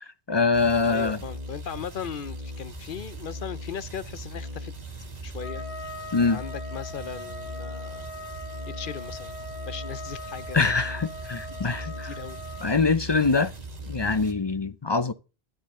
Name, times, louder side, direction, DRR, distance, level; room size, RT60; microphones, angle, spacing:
voice 1, 0.0-1.2 6.1-6.4 10.5-12.1 12.6-13.5 13.9-15.1, left 4 dB, 35° left, 0.5 m, -24 dB
sound 1, 0.5-14.3, equal, 40° right, 2.0 m, -39 dB
voice 2, 0.8-4.7 5.2-5.6 6.3-8.1 8.7-9.4 9.7-10.9 11.5-12.7, left 7 dB, 55° left, 0.8 m, -38 dB
Trumpet, 5.4-12.7, left 1 dB, 10° left, 4.0 m, -41 dB
13.0 x 10.5 x 3.7 m
omnidirectional pair, 1.1 m